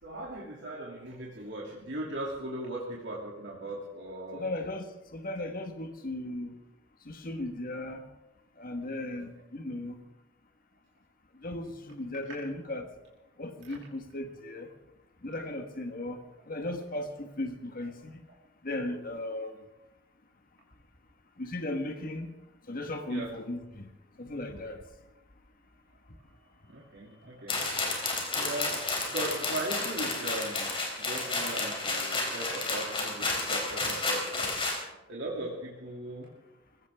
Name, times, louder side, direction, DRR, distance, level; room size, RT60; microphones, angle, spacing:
voice 1, 0.0-4.6 9.1-9.2 13.7-13.8 23.1-23.3 26.7-27.6 28.1-28.8 29.1-34.5 35.1-36.3, right 1 dB, 65° right, -4 dB, 2.7 m, -38 dB
voice 2, 4.3-6.6 7.0-8.0 8.6-9.9 11.4-12.9 13.4-14.7 15.2-18.2 18.6-19.6 21.4-22.3 22.7-23.9 24.2-24.8, left 1 dB, 50° left, 5 dB, 1.5 m, -36 dB
sound 1, 27.5-34.8, left 3 dB, 30° left, 3.8 m, -31 dB
21.0 x 16.5 x 3.6 m, 0.99 s
head